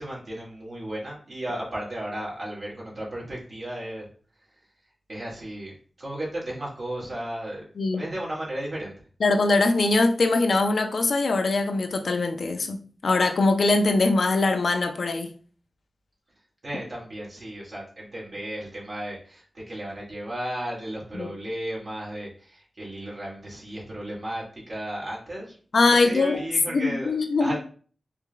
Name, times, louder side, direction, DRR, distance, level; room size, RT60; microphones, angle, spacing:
voice 1, 0.0-4.1 5.1-7.6 7.9-9.0 16.6-25.6 25.9-27.1 27.4-27.6, right 1 dB, 55° right, -5 dB, 1.9 m, -34 dB
voice 2, 9.2-15.3 21.1-21.3 25.7-26.4 26.7-27.5, left 3 dB, 80° left, 5 dB, 0.5 m, -22 dB
4.9 x 3.5 x 2.2 m, 0.42 s
wide cardioid pair, 100°, 0 cm